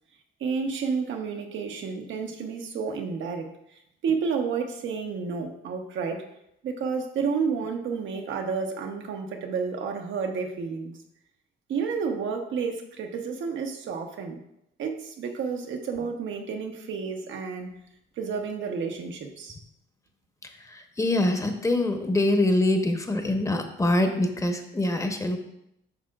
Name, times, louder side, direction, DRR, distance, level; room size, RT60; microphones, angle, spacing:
voice 1, 0.4-3.5 4.0-6.3 6.6-10.9 11.7-14.4 14.8-17.7 18.2-19.6, right 5 dB, 70° right, 4 dB, 1.0 m, -30 dB
voice 2, 20.7-25.4, left 1 dB, 15° left, 5 dB, 0.9 m, -24 dB
9.2 x 6.0 x 2.4 m, 0.80 s
cardioid pair, 90°, 20 cm